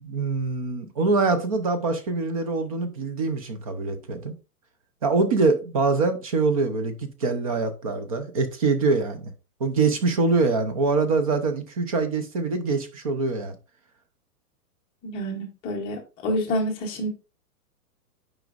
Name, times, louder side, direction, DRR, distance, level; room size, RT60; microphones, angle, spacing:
voice 1, 0.0-4.3 5.0-9.3 9.6-13.6, right 3 dB, 25° right, 0.5 m, -24 dB
voice 2, 15.0-17.1, equal, 10° left, 0.7 m, -28 dB
8.8 x 5.2 x 2.4 m
hypercardioid pair, 160°, 47 cm